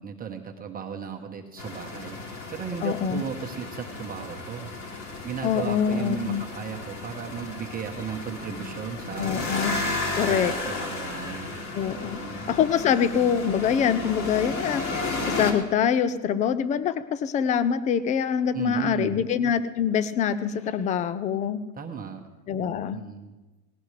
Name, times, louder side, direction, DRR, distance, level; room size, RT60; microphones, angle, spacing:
voice 1, 0.0-4.7 5.2-9.5 10.2-11.6 12.0-12.5 18.5-19.2 21.8-22.2 22.9-23.3, right 7 dB, 20° right, 2 dB, 1.1 m, -35 dB
sound 1, 1.6-15.5, left 3 dB, 35° left, 3.1 m, -33 dB
voice 2, 2.8-3.2 5.4-6.4 9.2-9.8 10.2-10.5 11.7-14.8 15.3-21.6 22.5-23.0, left 8 dB, 15° left, 15 dB, 0.4 m, -25 dB
19.0 x 18.0 x 3.3 m, 1.1 s
hypercardioid pair, 120°, 47 cm